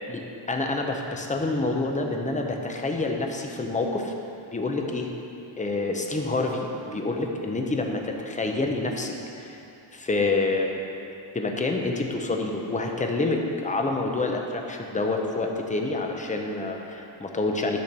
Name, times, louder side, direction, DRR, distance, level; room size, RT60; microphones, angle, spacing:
voice 1, 0.1-4.1 4.5-5.1 5.6-9.6 9.9-10.8 11.3-17.8, left 2 dB, 15° left, 2 dB, 0.7 m, -27 dB
10.5 x 4.5 x 6.7 m, 2.8 s
wide cardioid pair, 155°, 48 cm